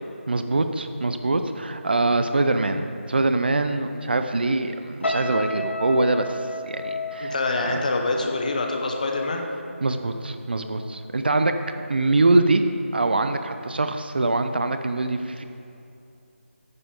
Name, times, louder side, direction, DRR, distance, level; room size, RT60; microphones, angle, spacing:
voice 1, 0.3-6.4 6.7-7.4 7.6-7.8 9.8-11.6 11.9-12.6 12.9-15.4, right 2 dB, 50° right, 8 dB, 0.6 m, -23 dB
sound 1, 5.0-10.3 10.6-10.9, left 2 dB, 60° left, 0.7 m, -33 dB
voice 2, 7.2-9.4, left 3 dB, 35° left, 3 dB, 1.0 m, -25 dB
11.0 x 9.6 x 3.7 m, 2.7 s
figure-of-eight pair, 160°, 7 cm